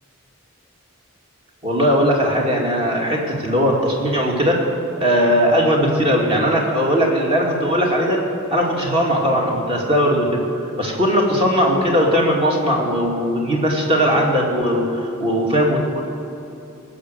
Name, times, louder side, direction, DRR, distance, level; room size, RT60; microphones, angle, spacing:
voice 1, 1.6-4.7 5.0-8.2 8.5-10.4 10.8-16.0, equal, 25° right, -2 dB, 2.5 m, -19 dB
18.0 x 6.6 x 8.2 m, 2.9 s
head